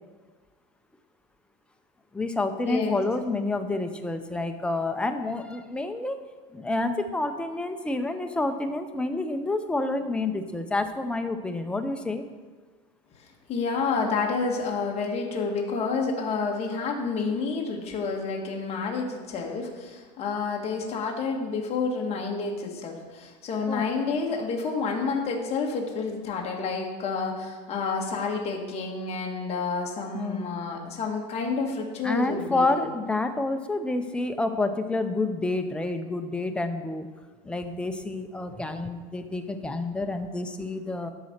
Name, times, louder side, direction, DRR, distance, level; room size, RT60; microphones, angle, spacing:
voice 1, 2.1-6.2 6.5-12.2 23.7-23.8 30.1-30.5 32.0-37.1 37.4-41.1, left 2 dB, 5° left, 6 dB, 0.5 m, -29 dB
voice 2, 2.7-3.0 13.5-32.8, left 4 dB, 30° left, -1 dB, 1.4 m, -29 dB
12.0 x 4.1 x 6.5 m, 1.4 s
cardioid pair, 155°, 21 cm